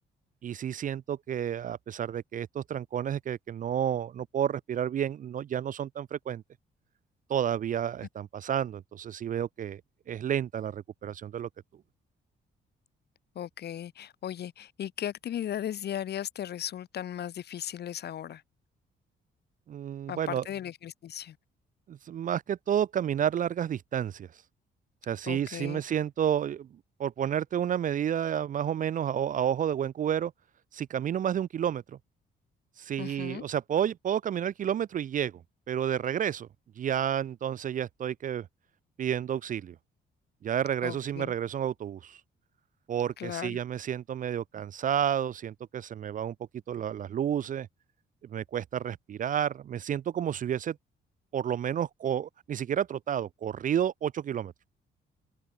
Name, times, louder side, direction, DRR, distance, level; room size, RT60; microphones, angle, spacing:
voice 1, 0.4-6.4 7.3-9.8 10.1-11.5 19.7-20.4 21.9-24.3 25.0-26.7 27.0-30.3 30.7-31.8 32.8-35.4 35.7-36.5 36.8-38.5 39.0-39.8 40.4-42.2 42.9-46.3 46.7-47.7 48.2-50.8 51.3-54.5, right 9 dB, 40° right, 0.4 m, -30 dB
voice 2, 13.3-18.4 20.1-21.4 25.3-25.8 33.0-33.4 40.8-41.3 43.2-43.6, left 10 dB, 55° left, 0.8 m, -36 dB
open air
cardioid pair, 90°, 20 cm